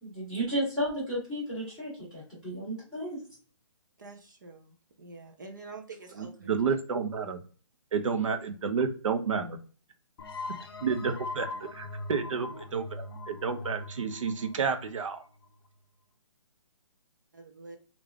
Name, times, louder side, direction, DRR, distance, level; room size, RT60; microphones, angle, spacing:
voice 1, 0.0-3.2, equal, 5° right, -14 dB, 1.7 m, -33 dB
voice 2, 4.0-6.5 17.3-17.8, right 3 dB, 35° right, 4 dB, 0.5 m, -47 dB
voice 3, 6.2-7.4 7.9-9.6 10.8-11.5 11.7-15.2, right 5 dB, 70° right, 7 dB, 0.7 m, -30 dB
sound 1, 10.2-15.7, left 2 dB, 50° left, 0.5 m, -41 dB
3.6 x 2.4 x 3.4 m, 0.40 s
hypercardioid pair, 175°, 17 cm